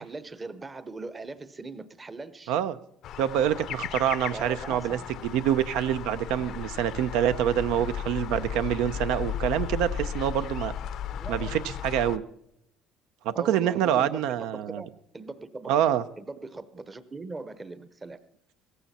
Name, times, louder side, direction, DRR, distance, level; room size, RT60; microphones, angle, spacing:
voice 1, 0.0-2.5 4.3-5.1 11.2-11.7 13.3-14.9 15.1-15.7 16.2-18.2, right 3 dB, 15° right, 13 dB, 0.7 m, -40 dB
sound 1, 3.0-12.2, left 9 dB, 50° left, 0.6 m, -35 dB
voice 2, 3.2-10.7 11.3-12.2 13.2-14.8 15.7-16.0, right 10 dB, 80° right, 12 dB, 0.6 m, -26 dB
17.0 x 15.0 x 4.2 m, 0.76 s
cardioid pair, 155°, 0 cm